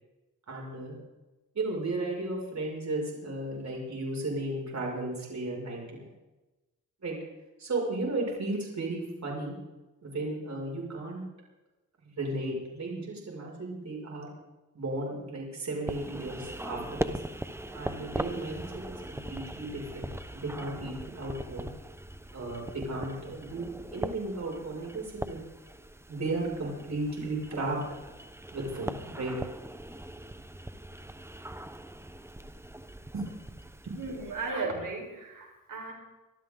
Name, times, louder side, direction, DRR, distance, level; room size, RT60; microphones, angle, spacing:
voice 1, 0.5-1.0 1.5-6.1 7.0-7.2 7.6-9.5 10.0-11.2 12.0-14.3 14.7-17.2 17.7-21.7 22.3-25.4 26.1-27.8 28.5-29.3 33.1-33.3 33.8-34.0, right 2 dB, 60° right, -2 dB, 6.0 m, -35 dB
sound 1, 15.9-34.5, right 1 dB, 10° right, 0.9 m, -40 dB
voice 2, 33.9-35.9, right 3 dB, 80° right, 1 dB, 4.5 m, -35 dB
26.0 x 12.5 x 3.9 m, 1.1 s
cardioid pair, 70°, 32 cm